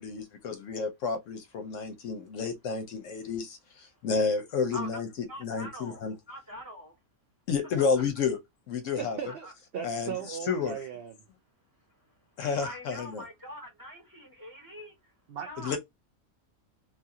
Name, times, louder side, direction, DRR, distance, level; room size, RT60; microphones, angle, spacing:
voice 1, 0.0-5.1 5.4-6.1 7.5-8.4 8.7-9.2 9.8-10.7 12.4-13.2 15.6-15.8, left 5 dB, 70° left, 0.9 m, -31 dB
voice 2, 5.3-6.0 6.3-6.9 9.3-9.5 12.6-14.9 15.4-15.8, equal, 15° right, 1.0 m, -43 dB
voice 3, 8.9-11.2 15.3-15.7, right 8 dB, 70° right, 0.5 m, -38 dB
2.9 x 2.4 x 2.7 m
omnidirectional pair, 1.5 m